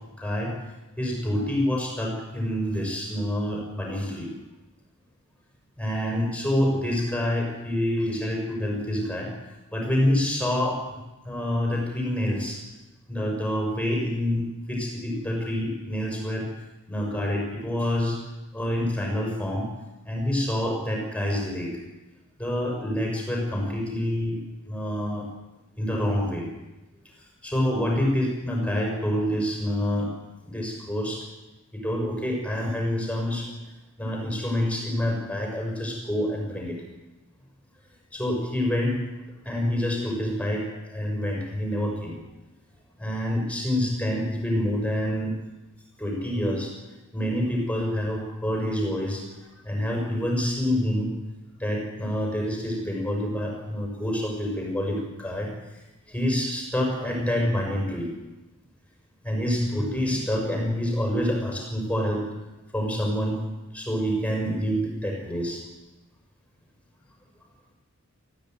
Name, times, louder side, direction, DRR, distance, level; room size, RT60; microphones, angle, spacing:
voice 1, 0.2-0.5 1.0-4.3 5.8-9.3 9.7-12.6 13.1-14.4 14.7-16.5 16.9-18.2 18.5-19.7 20.0-21.7 22.4-24.4 24.7-25.3 25.8-26.5 27.2-30.1 30.4-31.3 31.7-33.5 34.0-36.8 38.1-39.0 39.4-42.2 43.0-45.3 46.0-46.7 47.1-51.1 51.6-55.8 56.1-58.1 59.2-62.2 62.7-63.4 63.7-65.6, equal, 5° left, -1 dB, 6.0 m, -27 dB
23.0 x 14.5 x 9.1 m, 1.1 s
head